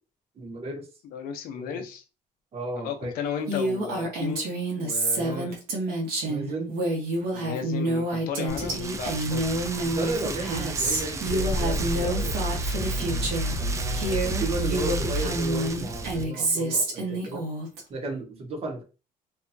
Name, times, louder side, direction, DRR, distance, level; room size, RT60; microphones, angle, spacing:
voice 1, 0.4-0.9 1.6-1.8 2.5-3.1 5.1-5.5 6.2-6.7 9.8-12.5 12.8-13.3 13.6-17.5 17.9-18.8, right 2 dB, 40° right, 3 dB, 0.9 m, -34 dB
voice 2, 1.0-2.0 2.8-5.6 7.3-9.6, left 7 dB, 75° left, 7 dB, 0.6 m, -35 dB
Female speech woman speaking, 3.5-13.6 13.9-17.8, right 1 dB, 85° right, 1.0 m, -28 dB
Rain, 8.5-16.2, right 2 dB, 20° right, 0.3 m, -34 dB
sound 1, 9.5-10.1 10.9-11.0 11.2-15.4, equal, 50° left, 0.8 m, -31 dB
2.7 x 2.2 x 2.6 m, 0.32 s
cardioid pair, 130°, 15 cm